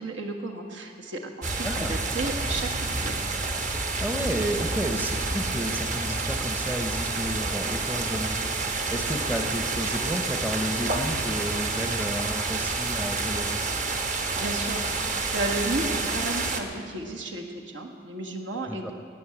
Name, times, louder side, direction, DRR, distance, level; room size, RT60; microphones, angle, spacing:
voice 1, 0.0-3.1 14.1-18.9, right 2 dB, 85° right, 2 dB, 1.5 m, -33 dB
sound 1, 1.4-16.6, right 3 dB, 40° right, 1.0 m, -29 dB
voice 2, 1.6-2.0 4.0-13.6 18.7-18.9, equal, 10° right, 5 dB, 0.7 m, -32 dB
18.0 x 6.3 x 8.6 m, 2.2 s
head